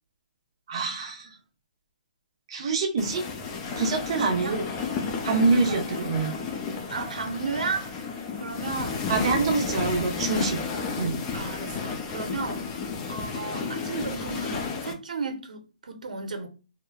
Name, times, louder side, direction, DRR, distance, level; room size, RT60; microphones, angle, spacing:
voice 1, 0.7-1.3 2.5-3.2 3.8-4.6 5.2-6.3 9.1-10.6 11.0-11.1, right 4 dB, 45° right, 0.8 m, -25 dB
sound 1, 3.0-14.9, left 5 dB, 20° left, 0.4 m, -32 dB
voice 2, 4.1-4.6 5.2-6.0 6.9-9.1 11.3-12.6 13.1-16.5, right 4 dB, 85° right, 0.8 m, -34 dB
3.0 x 2.1 x 2.3 m
hypercardioid pair, 160°, 4 cm